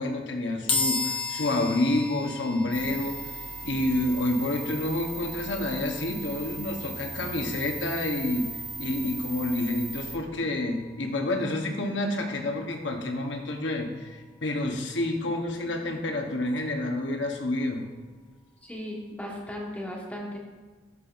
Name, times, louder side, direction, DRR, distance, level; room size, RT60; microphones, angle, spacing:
voice 1, 0.0-3.2 3.6-8.5 8.8-17.8, left 1 dB, 80° left, 3 dB, 1.0 m, -29 dB
sound 1, 0.7-14.0, left 4 dB, 30° left, 0.8 m, -37 dB
sound 2, 2.7-10.2, right 2 dB, 50° right, 1.9 m, -38 dB
voice 2, 18.6-20.4, left 1 dB, 10° left, -2 dB, 1.3 m, -36 dB
12.5 x 5.4 x 2.5 m, 1.4 s
head